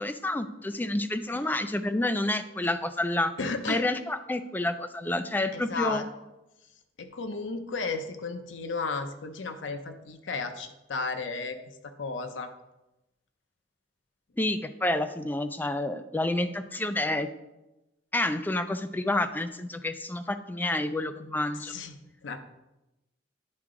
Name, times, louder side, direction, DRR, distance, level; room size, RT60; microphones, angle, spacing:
voice 1, 0.0-3.3 3.7-6.0 14.4-17.3 18.1-21.7, left 1 dB, 10° left, 9 dB, 0.3 m, -29 dB
voice 2, 3.4-3.8 5.5-6.0 7.0-11.6 12.0-12.5 21.7-21.9 22.2-22.4, left 4 dB, 85° left, 8 dB, 0.7 m, -33 dB
9.6 x 4.7 x 3.7 m, 0.96 s
head